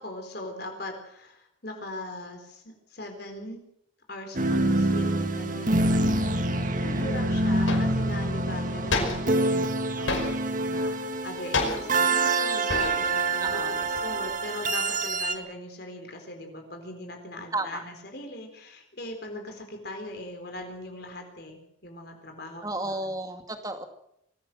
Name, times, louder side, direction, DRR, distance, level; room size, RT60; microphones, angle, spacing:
voice 1, 0.0-3.6 4.1-23.1, left 1 dB, 55° left, 4 dB, 4.1 m, -40 dB
sound 1, 4.3-15.3, right 2 dB, 40° right, 1.9 m, -26 dB
voice 2, 6.6-7.3 13.4-13.8 17.5-17.8 22.6-23.9, right 2 dB, 20° right, 6 dB, 2.3 m, -34 dB
sound 2, 7.0-7.1 7.7-8.0 8.9-9.4 10.1-10.6 11.5-12.1 12.7-13.2 13.5-14.3, left 3 dB, 80° left, 5.5 m, -30 dB
23.5 x 15.5 x 7.7 m, 0.74 s
head